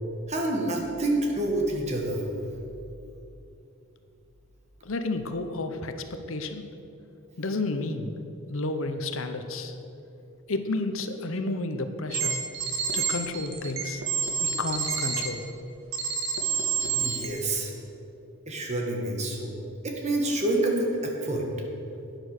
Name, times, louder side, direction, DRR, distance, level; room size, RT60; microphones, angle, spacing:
voice 1, 0.3-2.2 16.8-17.7 18.5-19.5 19.8-21.5, right 2 dB, 30° right, 1 dB, 1.8 m, -27 dB
voice 2, 4.8-6.7 7.4-8.1 8.5-9.8 10.5-12.4 12.9-14.1 14.4-15.5, left 2 dB, 65° left, 8 dB, 0.9 m, -31 dB
sound 1, 12.1-15.3 15.9-17.3, right 6 dB, 65° right, 1.7 m, -28 dB
11.5 x 9.5 x 6.6 m, 2.8 s
head